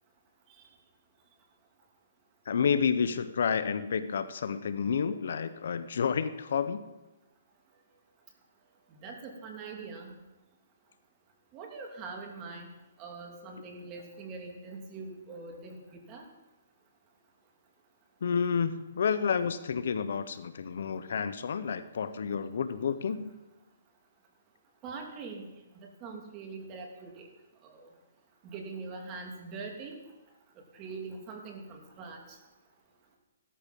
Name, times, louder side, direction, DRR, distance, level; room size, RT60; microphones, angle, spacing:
voice 1, 2.5-6.8 18.2-23.3, left 6 dB, 65° left, 13 dB, 0.9 m, -30 dB
voice 2, 8.9-10.1 11.5-12.7 13.0-15.8 16.1-16.2 24.8-25.5 25.8-27.3 27.6-27.9 28.4-30.0 30.7-32.4, right 4 dB, 25° right, 1 dB, 2.9 m, -43 dB
16.0 x 13.0 x 5.4 m, 1.0 s
hypercardioid pair, 155°, 0 cm